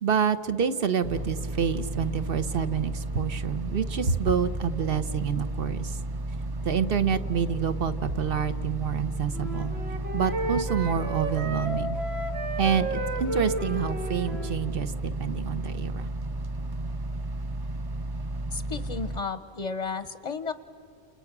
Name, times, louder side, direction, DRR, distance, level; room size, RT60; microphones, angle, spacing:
voice 1, 0.0-6.0 6.6-9.7 10.1-12.0 12.6-16.1, right 7 dB, 60° right, 11 dB, 1.1 m, -28 dB
sound 1, 1.0-19.2, right 2 dB, 30° right, 0.5 m, -33 dB
Wind instrument woodwind instrument, 9.3-14.6, right 1 dB, 80° right, 1.9 m, -33 dB
voice 2, 18.5-20.5, left 5 dB, 40° left, 11 dB, 0.7 m, -33 dB
29.0 x 28.5 x 6.0 m, 2.7 s
omnidirectional pair, 1.1 m